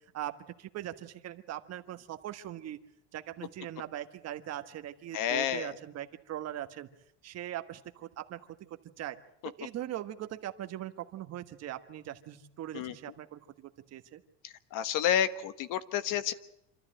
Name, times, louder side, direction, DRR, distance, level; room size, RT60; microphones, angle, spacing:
voice 1, 0.6-2.8 3.1-6.9 7.2-9.2 9.4-14.2, right 12 dB, 45° right, 9 dB, 1.4 m, -40 dB
voice 2, 5.1-5.7 12.7-12.9 14.7-16.3, left 10 dB, 55° left, 13 dB, 1.4 m, -29 dB
26.5 x 13.5 x 9.0 m, 0.82 s
cardioid pair, 140°, 37 cm